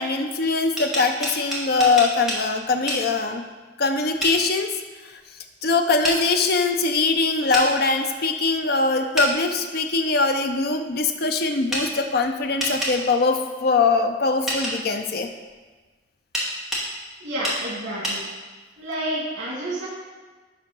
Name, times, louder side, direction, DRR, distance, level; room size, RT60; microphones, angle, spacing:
voice 1, 0.0-3.4 3.8-4.7 5.6-15.3, left 3 dB, 55° left, 5 dB, 0.6 m, -22 dB
sound 1, 0.6-2.4 2.9-3.0 4.2-4.4 6.0-6.2 7.5-7.7 9.2-9.3 11.7-11.9 12.6-13.0 14.5-14.8 16.3-16.9 17.4-17.6 18.0-18.2, equal, ahead, 1.4 m, -26 dB
voice 2, 17.2-18.2 18.8-19.9, right 1 dB, 85° right, -6 dB, 2.4 m, -29 dB
10.5 x 3.5 x 5.5 m, 1.3 s
head